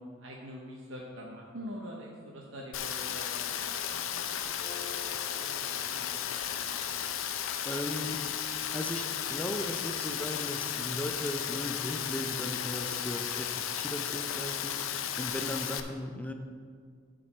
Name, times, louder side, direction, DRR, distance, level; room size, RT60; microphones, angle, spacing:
voice 1, 0.2-6.7, equal, 75° right, -2 dB, 1.0 m, -45 dB
Rain, 2.7-15.8, left 9 dB, 90° left, 0.6 m, -34 dB
sound 1, 4.6-6.8, left 4 dB, 35° left, 1.0 m, -49 dB
voice 2, 7.6-8.2 8.7-14.9 15.2-16.3, left 1 dB, 5° left, 4 dB, 0.5 m, -37 dB
11.5 x 5.1 x 4.3 m, 2.1 s
head